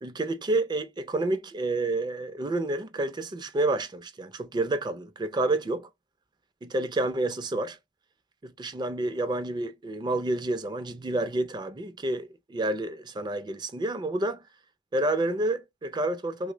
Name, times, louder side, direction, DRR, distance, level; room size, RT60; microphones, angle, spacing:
voice 1, 0.0-5.9 6.6-7.8 8.4-14.4 14.9-16.5, right 2 dB, 20° right, 0.4 m, -29 dB
3.2 x 2.0 x 3.2 m
head